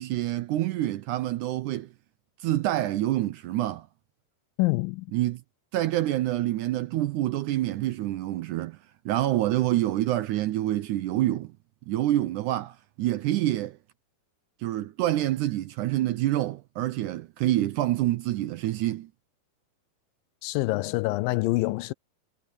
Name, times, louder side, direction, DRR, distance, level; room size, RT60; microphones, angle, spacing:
voice 1, 0.0-1.9 2.4-3.9 5.1-5.4 5.7-8.8 9.1-11.5 11.9-13.8 14.6-19.1, right 14 dB, 80° right, 1.9 m, -27 dB
voice 2, 4.6-5.1 20.4-21.9, left 21 dB, 85° left, 2.2 m, -26 dB
omnidirectional pair, 4.1 m